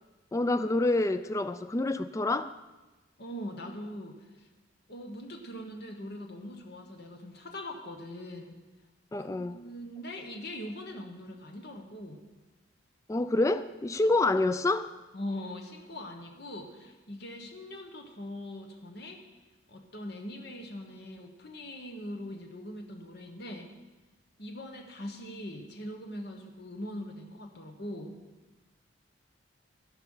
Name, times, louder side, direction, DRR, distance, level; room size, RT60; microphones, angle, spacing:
voice 1, 0.3-2.5 9.1-9.6 13.1-14.9, left 2 dB, 15° left, 12 dB, 0.3 m, -27 dB
voice 2, 3.2-4.5 4.9-8.5 9.2-12.2 15.1-19.2 19.7-23.7 24.4-28.2, left 1 dB, 60° left, 4 dB, 1.3 m, -41 dB
12.5 x 11.0 x 5.6 m, 1.1 s
head